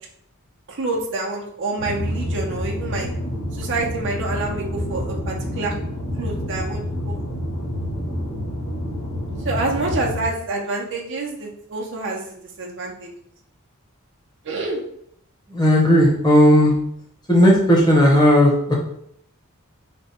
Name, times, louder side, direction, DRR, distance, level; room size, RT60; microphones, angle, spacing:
voice 1, 0.7-3.1 3.5-5.7 6.2-7.1 9.4-13.1 14.4-14.8, right 3 dB, 60° right, -1 dB, 0.7 m, -27 dB
sound 1, 1.8-10.3, equal, 70° left, 1.0 m, -28 dB
voice 2, 15.5-16.7 17.3-18.8, equal, 20° left, -3 dB, 1.0 m, -14 dB
3.4 x 2.2 x 4.3 m, 0.70 s
head